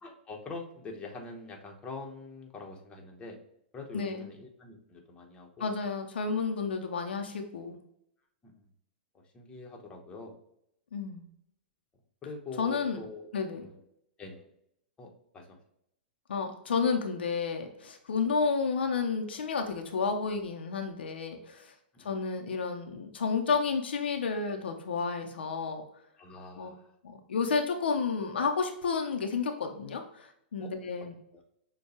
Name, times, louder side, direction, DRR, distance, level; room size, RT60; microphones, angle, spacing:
voice 1, 0.0-3.4 3.7-5.7 8.4-8.6 9.1-10.3 12.2-13.8 14.2-14.5 15.0-15.6 21.9-22.2 26.2-26.9 30.6-30.7, left 3 dB, 20° left, 1 dB, 1.0 m, -44 dB
voice 2, 3.9-4.3 5.6-7.8 10.9-11.3 12.6-13.0 13.3-13.7 16.3-21.7 22.0-25.8 26.6-26.7 27.0-31.1, left 5 dB, 80° left, 4 dB, 0.7 m, -31 dB
6.5 x 2.3 x 2.9 m, 0.75 s
hypercardioid pair, 115°, 6 cm